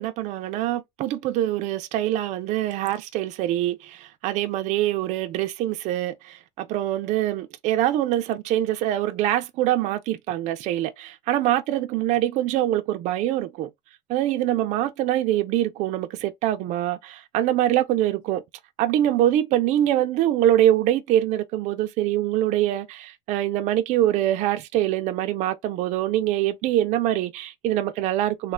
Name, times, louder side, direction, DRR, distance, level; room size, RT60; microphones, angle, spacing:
voice 1, 0.0-13.7 14.1-18.4 18.8-28.5, right 13 dB, 50° right, 0.5 m, -24 dB
3.2 x 2.2 x 3.7 m
cardioid pair, 145°, 16 cm